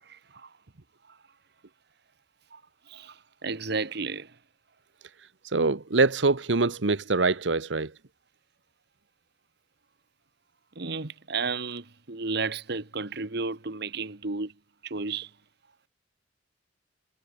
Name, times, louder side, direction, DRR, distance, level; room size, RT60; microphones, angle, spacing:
voice 1, 0.1-0.5 2.5-2.6 2.9-4.3 10.7-14.5 14.8-15.3, right 4 dB, 65° right, 1.7 m, -33 dB
voice 2, 5.5-7.9, right 3 dB, 80° right, 1.2 m, -24 dB
head